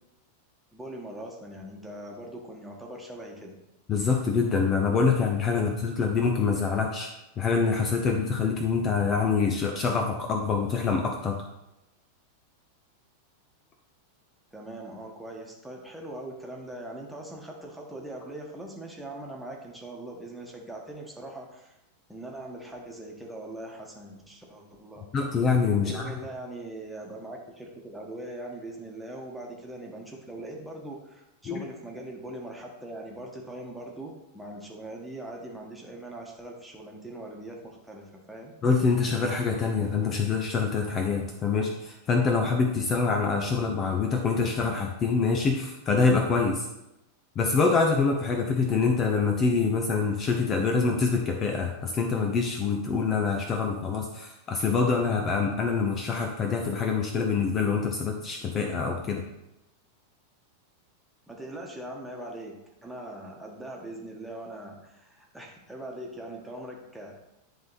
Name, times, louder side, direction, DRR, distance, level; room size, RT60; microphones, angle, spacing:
voice 1, 0.7-3.6 14.5-21.8 22.1-25.0 25.7-38.5 61.3-67.2, right 1 dB, 5° right, -1 dB, 1.4 m, -41 dB
voice 2, 3.9-7.1 7.4-11.5 25.1-26.1 31.4-31.6 38.6-46.7 47.4-59.3, left 5 dB, 30° left, 3 dB, 0.7 m, -25 dB
10.5 x 3.6 x 4.2 m, 0.91 s
figure-of-eight pair, 90°, 0 cm